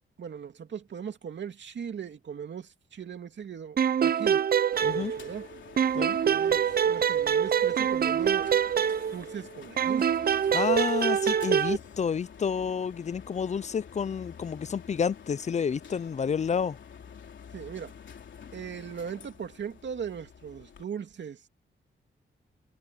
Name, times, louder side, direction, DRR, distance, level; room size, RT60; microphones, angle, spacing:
voice 1, 0.2-4.4 4.9-5.4 6.2-8.5 9.1-10.1 17.5-17.9 18.5-21.5, right 7 dB, 65° right, 2.6 m, -39 dB
sound 1, 3.8-5.5 5.8-9.4 9.8-11.8, right 8 dB, 50° right, 0.6 m, -25 dB
sound 2, 4.7-20.8, left 7 dB, 70° left, 3.4 m, -48 dB
voice 2, 4.8-5.1 5.9-6.2 10.5-16.8, left 6 dB, 35° left, 0.5 m, -30 dB
wide cardioid pair, 120°, 20 cm